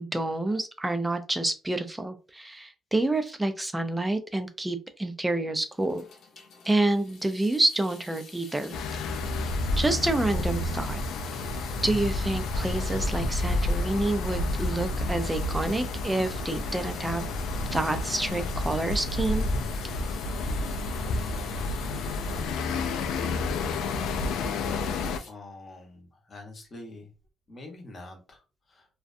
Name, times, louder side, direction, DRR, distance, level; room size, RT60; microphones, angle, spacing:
voice 1, 0.0-6.0 6.6-8.8 9.0-9.3 9.8-11.0 11.8-17.3 17.7-19.5, right 2 dB, 10° right, 8 dB, 0.3 m, -28 dB
Water tap faucet / Sink (filling or washing) / Drip, 5.7-25.3, left 5 dB, 55° left, 0.7 m, -46 dB
sound 1, 8.7-25.2, left 2 dB, 90° left, 0.3 m, -30 dB
voice 2, 25.3-27.1 27.5-29.0, left 2 dB, 30° left, 1 dB, 0.8 m, -46 dB
2.5 x 2.2 x 2.5 m, 0.31 s
cardioid pair, 165°, 0 cm